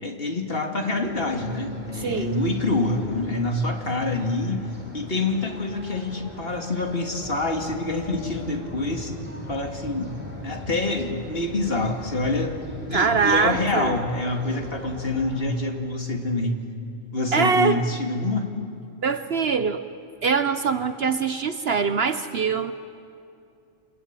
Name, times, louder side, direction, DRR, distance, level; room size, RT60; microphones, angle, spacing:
voice 1, 0.0-9.1 9.5-12.6 12.9-16.6 17.1-18.6, left 2 dB, 45° left, 3 dB, 2.5 m, -26 dB
sound 1, 1.0-15.4, equal, 10° right, 5.2 m, -41 dB
voice 2, 2.0-2.4 12.9-13.9 17.3-17.8 19.0-19.8 20.2-22.7, right 5 dB, 55° right, 11 dB, 0.9 m, -23 dB
27.5 x 21.5 x 8.9 m, 2.5 s
omnidirectional pair, 1.4 m